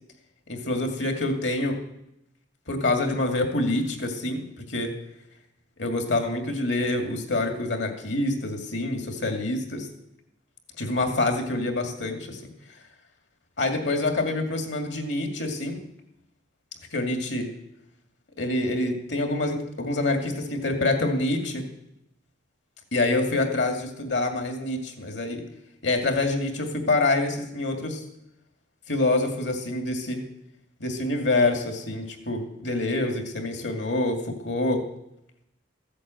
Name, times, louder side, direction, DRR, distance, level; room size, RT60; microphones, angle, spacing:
voice 1, 0.5-1.8 2.7-4.4 4.7-4.9 5.8-9.9 10.8-12.4 13.6-15.8 16.9-17.5 18.4-21.7 22.9-25.4 25.8-28.0 28.9-30.2 30.8-34.8, left 2 dB, 70° left, 5 dB, 2.4 m, -26 dB
15.0 x 8.5 x 7.7 m, 0.83 s
head